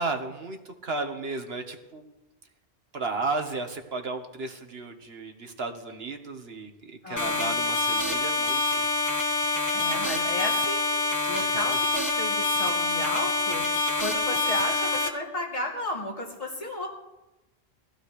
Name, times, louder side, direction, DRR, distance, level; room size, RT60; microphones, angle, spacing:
voice 1, 0.0-2.0 2.9-8.9 11.2-11.5, right 3 dB, 70° right, 5 dB, 1.7 m, -34 dB
voice 2, 7.0-7.6 9.7-10.9 11.2-13.6 14.0-16.9, left 1 dB, 35° left, -3 dB, 3.2 m, -33 dB
sound 1, 7.2-15.1, left 2 dB, 20° left, 1.1 m, -26 dB
22.5 x 16.0 x 3.3 m, 1.0 s
omnidirectional pair, 1.1 m